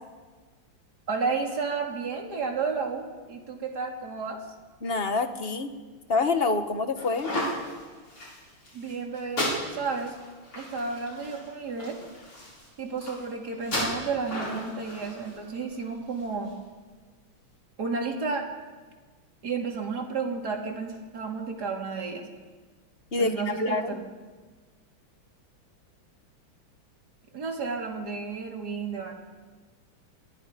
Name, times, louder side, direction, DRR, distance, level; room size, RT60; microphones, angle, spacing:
voice 1, 1.1-4.4 8.7-9.5 9.7-10.2 10.6-12.0 12.8-16.6 17.8-18.4 19.4-22.3 23.2-24.0 27.3-29.1, right 4 dB, 45° right, 1 dB, 3.5 m, -32 dB
voice 2, 4.8-5.7 6.1-7.3 23.1-24.0, left 3 dB, 30° left, 7 dB, 1.4 m, -26 dB
sound 1, 7.0-16.5, left 1 dB, 65° left, 8.7 m, -35 dB
28.5 x 22.5 x 5.3 m, 1.4 s
omnidirectional pair, 2.4 m